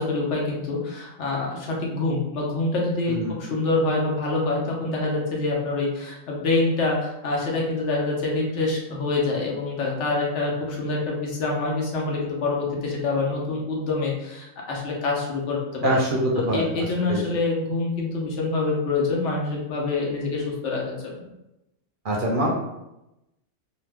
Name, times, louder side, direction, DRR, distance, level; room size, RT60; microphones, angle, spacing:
voice 1, 0.0-16.0 16.3-21.2, left 3 dB, 80° left, -2 dB, 1.1 m, -26 dB
voice 2, 15.8-16.6 17.1-17.2 22.0-22.5, right 1 dB, 60° right, -2 dB, 0.6 m, -23 dB
2.9 x 2.0 x 3.3 m, 0.92 s
omnidirectional pair, 1.2 m